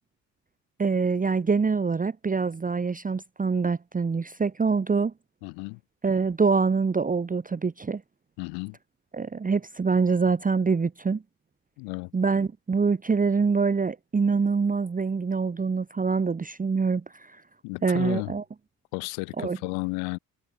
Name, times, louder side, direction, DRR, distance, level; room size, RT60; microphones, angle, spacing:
voice 1, 0.8-5.1 6.0-8.0 9.1-11.2 12.1-17.4 17.8-18.4 19.4-19.6, right 4 dB, 20° right, 1.0 m, -25 dB
voice 2, 5.4-5.8 8.4-8.8 11.8-12.1 17.6-18.3 18.9-20.2, left 36 dB, 75° left, 1.4 m, -33 dB
hypercardioid pair, 55°, 42 cm